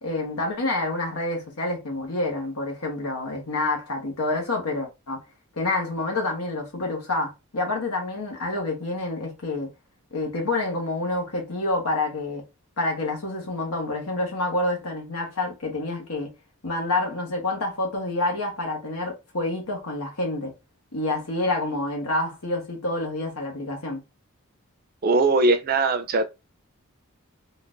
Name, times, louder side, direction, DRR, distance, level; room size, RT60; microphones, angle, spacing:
voice 1, 0.0-5.2 5.5-9.7 10.1-12.4 12.8-16.3 16.6-20.5 20.9-24.0, left 2 dB, 90° left, 1.3 m, -28 dB
voice 2, 25.0-26.2, right 3 dB, 40° right, 0.5 m, -20 dB
3.8 x 2.5 x 2.5 m
head